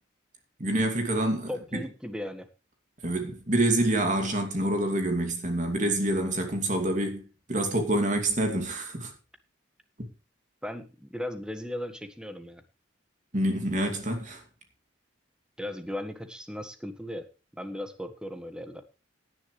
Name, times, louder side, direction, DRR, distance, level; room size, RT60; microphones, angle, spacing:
voice 1, 0.6-1.8 3.0-9.1 13.3-14.4, right 1 dB, 40° right, 2.6 m, -27 dB
voice 2, 1.5-2.5 10.6-12.6 15.6-17.3 17.5-18.8, left 1 dB, 5° right, 1.5 m, -37 dB
18.0 x 10.0 x 3.3 m
head